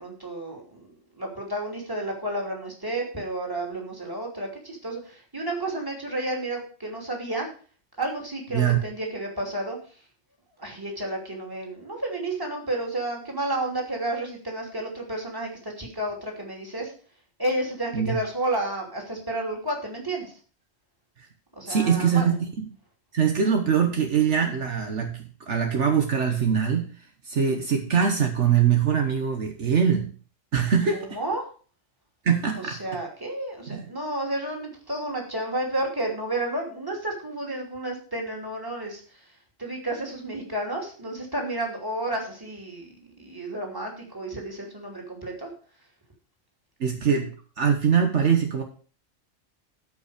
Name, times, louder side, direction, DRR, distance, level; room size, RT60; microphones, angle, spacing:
voice 1, 0.0-7.5 8.0-9.8 10.6-16.9 17.4-20.3 21.6-22.3 30.9-31.4 32.5-39.0 39.6-45.5, right 1 dB, 15° right, 0 dB, 2.9 m, -31 dB
voice 2, 21.7-22.3 23.1-26.9 27.2-30.1 30.5-31.2 32.2-32.8 33.7-33.9 46.8-48.6, right 7 dB, 65° right, 4 dB, 1.4 m, -23 dB
13.5 x 5.5 x 5.0 m, 0.40 s
omnidirectional pair, 1.3 m